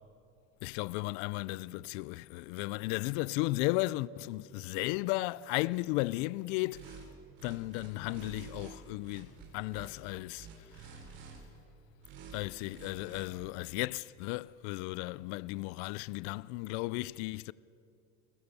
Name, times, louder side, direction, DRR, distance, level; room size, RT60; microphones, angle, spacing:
voice 1, 0.6-7.0 7.4-11.0 12.3-17.5, left 20 dB, 75° left, 0.5 m, -35 dB
sound 1, 6.7-7.0 7.3-8.7 9.0-9.9 10.3-11.4 12.0-12.4 12.7-13.2, right 6 dB, 80° right, 7.8 m, -49 dB
29.5 x 21.0 x 6.8 m
supercardioid pair, 110°, 33 cm